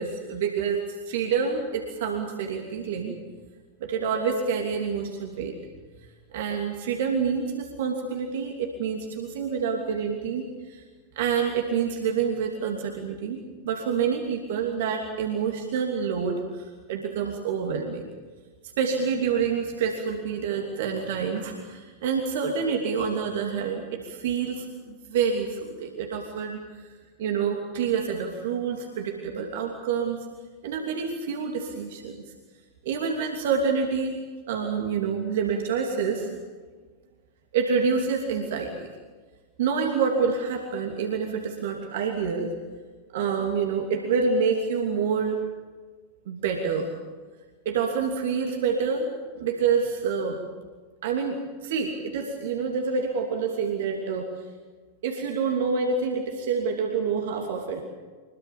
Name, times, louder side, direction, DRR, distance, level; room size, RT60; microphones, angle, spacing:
voice 1, 0.0-3.1 3.8-5.5 6.3-10.8 11.1-13.4 13.6-18.1 18.8-26.9 27.2-30.2 30.6-32.1 32.8-34.2 34.5-36.4 37.5-38.9 39.6-42.5 43.1-45.4 46.3-46.9 47.6-49.1 49.4-50.4 51.0-54.3 55.0-57.8, right 6 dB, 55° right, 2 dB, 2.9 m, -27 dB
25.0 x 22.5 x 7.3 m, 1.4 s
figure-of-eight pair, 90°, 0 cm